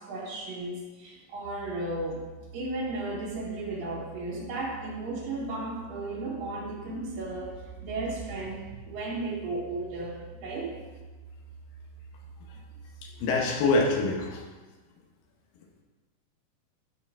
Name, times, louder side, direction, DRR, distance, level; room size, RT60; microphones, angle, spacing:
voice 1, 0.0-2.2 2.5-10.7, right 2 dB, 75° right, -4 dB, 3.0 m, -35 dB
sound 1, 1.4-14.4, right 4 dB, 60° right, 2.0 m, -48 dB
voice 2, 13.0-14.4, left 3 dB, 75° left, 0 dB, 2.7 m, -25 dB
13.5 x 4.6 x 3.6 m, 1.3 s
omnidirectional pair, 4.1 m